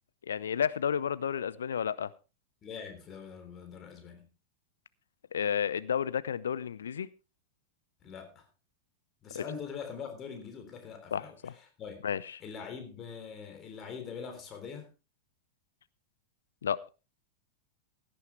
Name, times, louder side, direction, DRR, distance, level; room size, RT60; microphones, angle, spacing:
voice 1, 0.3-2.1 5.3-7.1 9.3-9.4 11.1-11.5 12.0-12.4 16.6-16.8, left 8 dB, 65° left, 0.5 m, -31 dB
voice 2, 2.6-4.3 8.0-8.4 9.2-11.4 11.8-12.0 12.4-14.9, left 6 dB, 30° left, 3.6 m, -43 dB
16.5 x 10.5 x 3.3 m
figure-of-eight pair, 90°, 0 cm